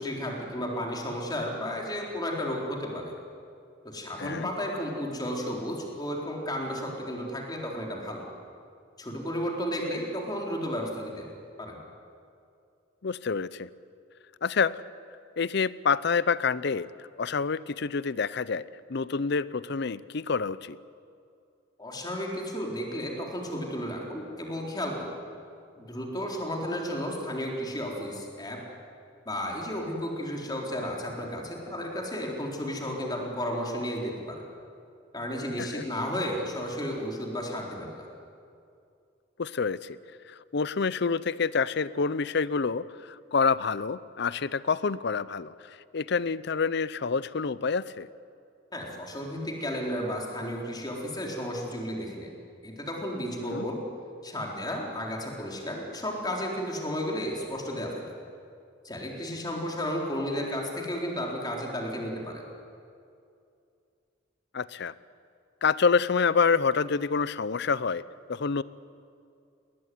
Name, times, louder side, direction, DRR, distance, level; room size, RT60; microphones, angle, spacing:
voice 1, 0.0-3.1 3.8-8.3 9.0-11.3 11.6-11.8 21.8-25.2 25.8-28.6 29.3-34.4 35.1-38.1 48.7-52.3 52.6-53.8 54.2-58.0 58.8-62.4, equal, 20° left, -1 dB, 4.0 m, -33 dB
voice 2, 13.0-13.7 14.4-14.8 15.4-20.8 35.6-35.8 39.4-40.0 40.3-48.1 53.5-53.6 64.5-64.9 65.6-68.0 68.3-68.6, left 5 dB, 60° left, 18 dB, 0.6 m, -27 dB
21.0 x 19.0 x 9.5 m, 2.5 s
head